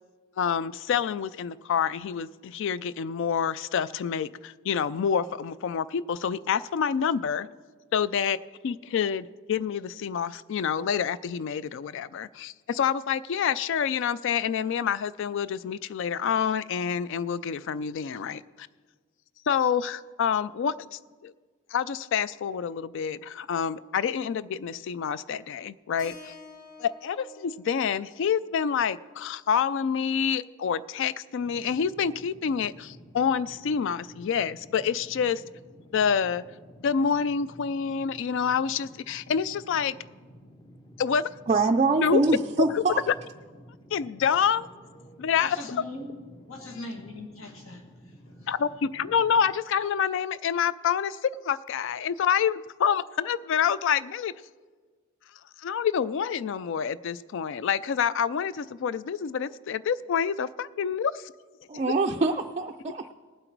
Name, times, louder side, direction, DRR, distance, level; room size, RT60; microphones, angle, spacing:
voice 1, 0.4-7.5 7.9-8.4 8.6-18.7 19.5-21.3 21.7-26.3 26.8-35.4 35.9-36.4 36.8-39.9 41.0-41.3 42.0-42.2 42.7-43.1 43.9-44.7 45.2-45.8 48.5-54.4 55.6-61.3 61.7-61.9, left 7 dB, 60° left, 18 dB, 0.3 m, -27 dB
Keyboard (musical), 26.0-30.2, left 3 dB, 40° left, 1.8 m, -51 dB
sound 1, 31.4-49.6, equal, 20° left, 0.7 m, -51 dB
voice 2, 41.5-43.0 61.7-63.0, right 3 dB, 30° right, 4 dB, 0.3 m, -24 dB
voice 3, 45.4-46.2 46.5-47.8 48.4-48.5, left 1 dB, 80° left, 3 dB, 1.9 m, -40 dB
19.0 x 7.8 x 4.6 m, 1.5 s
head